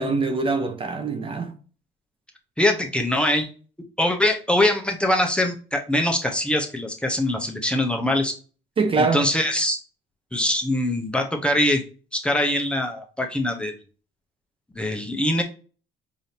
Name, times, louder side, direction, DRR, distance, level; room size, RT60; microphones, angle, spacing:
voice 1, 0.0-1.5 8.8-9.3, right 4 dB, 30° right, 0.7 m, -23 dB
voice 2, 2.6-3.5 4.0-8.4 9.0-9.8 10.3-11.8 12.1-13.7 14.8-15.4, left 1 dB, 5° left, 0.7 m, -23 dB
5.0 x 2.7 x 2.7 m
cardioid pair, 110°, 17 cm